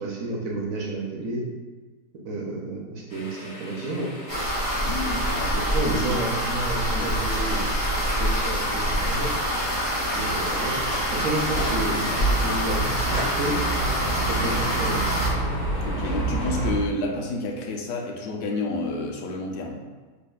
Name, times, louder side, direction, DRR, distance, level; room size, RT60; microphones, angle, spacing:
voice 1, 0.0-1.4 2.2-4.1 5.5-7.7 8.0-9.3 10.1-10.8 11.1-13.6 14.3-15.0, right 2 dB, 70° right, -1 dB, 0.9 m, -30 dB
sound 1, 3.1-16.7, left 2 dB, 50° left, 0.9 m, -42 dB
sound 2, 4.3-15.3, equal, 25° left, 1.3 m, -26 dB
voice 2, 4.8-5.9 6.5-7.1 15.8-19.8, left 2 dB, 90° left, 1 dB, 1.2 m, -30 dB
sound 3, 4.8-16.8, right 2 dB, 15° right, 1.3 m, -30 dB
4.1 x 3.1 x 2.3 m, 1.3 s
omnidirectional pair, 1.7 m